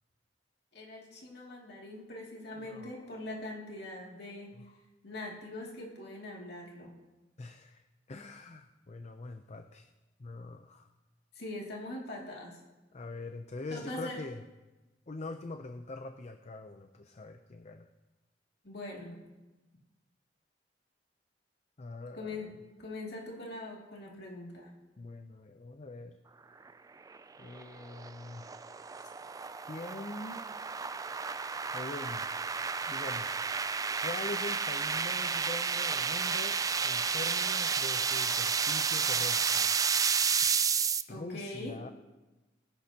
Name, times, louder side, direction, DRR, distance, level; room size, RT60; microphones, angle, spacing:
voice 1, 0.7-4.6 5.0-6.9 11.3-12.6 13.7-14.2 18.6-19.2 22.1-22.5 22.8-24.7 41.1-41.8, left 2 dB, 65° left, -2 dB, 2.5 m, -42 dB
voice 2, 2.5-3.5 4.5-4.6 7.4-9.9 10.2-10.9 12.9-14.4 15.1-17.9 21.8-22.5 25.0-26.2 27.4-28.4 29.0-29.1 29.7-30.4 31.7-32.3 32.9-33.6 34.0-36.6 36.8-39.8 41.1-41.9, left 2 dB, 40° left, 7 dB, 0.6 m, -43 dB
sound 1, 27.1-41.0, right 6 dB, 20° right, 0.3 m, -31 dB
22.5 x 10.5 x 2.9 m, 1.1 s
head